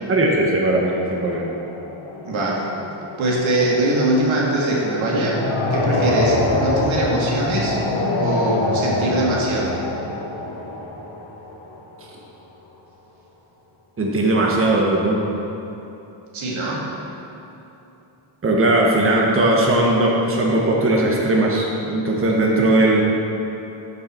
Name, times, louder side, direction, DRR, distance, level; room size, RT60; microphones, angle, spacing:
voice 1, 0.1-1.5 14.0-15.3 18.4-23.0, right 2 dB, 25° right, -2 dB, 1.2 m, -18 dB
sound 1, 1.1-11.9, left 2 dB, 80° left, 1.4 m, -25 dB
voice 2, 2.2-2.6 3.2-5.4 5.7-7.8 8.2-9.8 16.3-16.9, right 2 dB, 80° right, -4 dB, 2.0 m, -22 dB
12.0 x 5.5 x 4.4 m, 3.0 s
cardioid pair, 105°, 47 cm